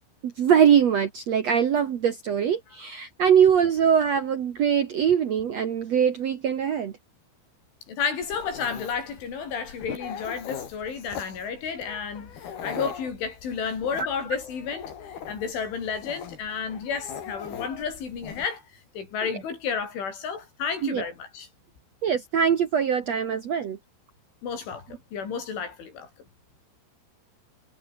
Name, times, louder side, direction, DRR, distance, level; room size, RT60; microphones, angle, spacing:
voice 1, 0.2-6.9 12.8-12.9 20.8-21.1 22.0-23.8, right 8 dB, 80° right, 1.5 m, -22 dB
voice 2, 7.9-21.5 24.4-26.1, left 6 dB, 90° left, 8.3 m, -32 dB
Dog, 8.2-18.5, left 8 dB, 60° left, 4.7 m, -41 dB
omnidirectional pair, 5.3 m